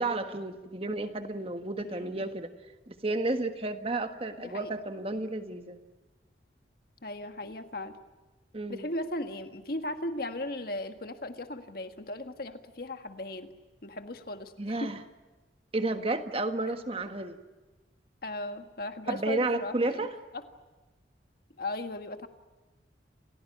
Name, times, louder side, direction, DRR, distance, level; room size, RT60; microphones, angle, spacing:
voice 1, 0.0-2.5 2.9-5.8 8.5-8.8 14.6-15.0 15.7-17.4 19.1-20.1, right 2 dB, 30° right, 7 dB, 1.5 m, -32 dB
voice 2, 1.8-2.3 4.4-4.7 7.0-8.0 8.7-13.5 13.8-14.9 18.2-20.1 20.3-20.4 21.6-22.3, left 1 dB, 55° left, 7 dB, 1.7 m, -37 dB
29.5 x 16.5 x 9.9 m, 1.2 s
head